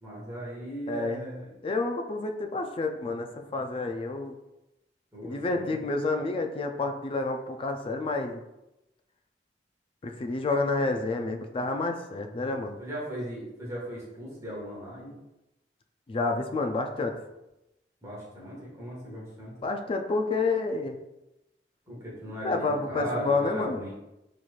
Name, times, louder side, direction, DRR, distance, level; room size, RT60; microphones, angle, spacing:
voice 1, 0.0-1.5 5.1-5.8 12.2-12.5 12.8-15.2 18.0-19.5 21.9-23.9, equal, 20° right, -7 dB, 1.4 m, -38 dB
voice 2, 0.9-1.3 1.6-4.4 5.2-8.4 10.0-12.8 16.1-17.2 19.6-21.0 22.4-23.8, left 3 dB, 30° left, 5 dB, 0.3 m, -29 dB
4.2 x 3.1 x 2.3 m, 0.93 s
head